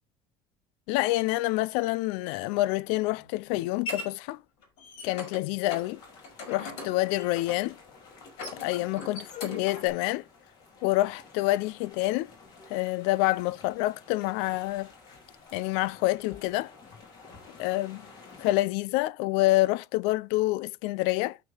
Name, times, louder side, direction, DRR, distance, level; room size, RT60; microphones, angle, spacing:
voice 1, 0.9-4.4 5.0-6.0 6.5-7.8 8.5-10.2 10.8-12.3 12.7-14.9 15.5-16.7 17.6-18.0 18.4-21.4, left 18 dB, 85° left, 0.4 m, -27 dB
sound 1, 3.2-4.1 4.6-5.4 5.7-5.9 6.2-7.7 8.2-9.9, left 3 dB, 60° left, 5.9 m, -40 dB
sound 2, 5.6-18.6, left 4 dB, 40° left, 2.9 m, -52 dB
8.7 x 5.8 x 6.4 m
cardioid pair, 180°, 11 cm